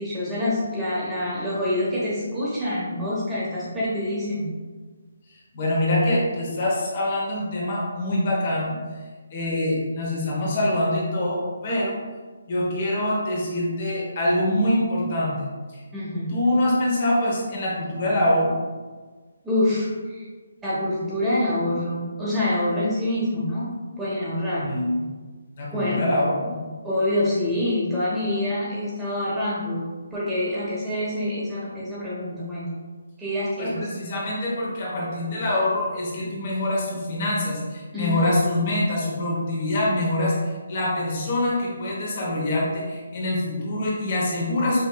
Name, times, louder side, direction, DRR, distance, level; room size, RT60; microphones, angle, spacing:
voice 1, 0.0-4.6 15.9-16.3 19.4-20.3 20.6-23.7 24.0-24.7 25.7-26.1 26.8-32.8 33.2-33.9 37.9-38.3, left 1 dB, 10° right, -9 dB, 1.1 m, -26 dB
voice 2, 5.5-9.0 9.3-12.0 12.5-15.5 15.7-15.8 16.3-18.5 24.6-25.0 25.6-26.7 33.6-44.8, left 1 dB, 40° left, -4 dB, 1.0 m, -24 dB
5.2 x 3.1 x 2.3 m, 1.4 s
figure-of-eight pair, 145°, 0 cm